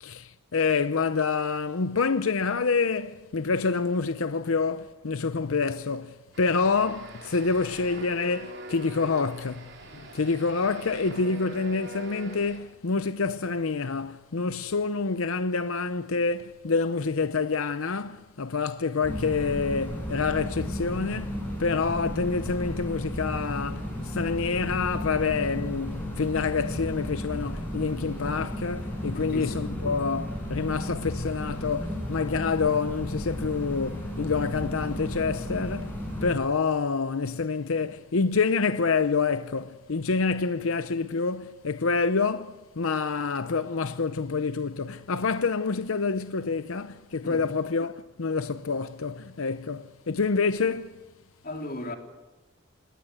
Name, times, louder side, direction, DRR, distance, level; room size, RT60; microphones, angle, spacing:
voice 1, 0.0-50.9, left 4 dB, 85° left, 0.7 m, -27 dB
sound 1, 6.3-12.6, right 2 dB, 55° right, 4.7 m, -44 dB
sound 2, 19.0-36.3, equal, 10° left, 7.8 m, -34 dB
voice 2, 29.1-29.7 47.2-47.5 51.4-52.0, left 1 dB, 45° left, 3.5 m, -36 dB
27.5 x 20.0 x 8.0 m
head